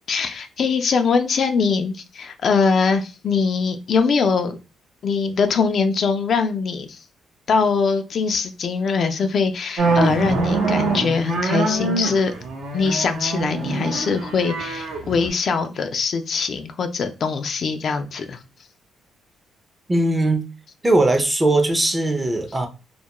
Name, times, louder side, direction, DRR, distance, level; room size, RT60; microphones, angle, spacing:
voice 1, 0.1-4.6 5.0-7.0 7.5-12.3 12.7-18.4, left 5 dB, 55° left, 0.3 m, -22 dB
sound 1, 9.8-15.3, right 3 dB, 75° right, 0.8 m, -24 dB
voice 2, 19.9-20.4 20.8-22.7, right 2 dB, 20° right, 0.5 m, -19 dB
2.3 x 2.2 x 2.9 m
cardioid pair, 90°, 0 cm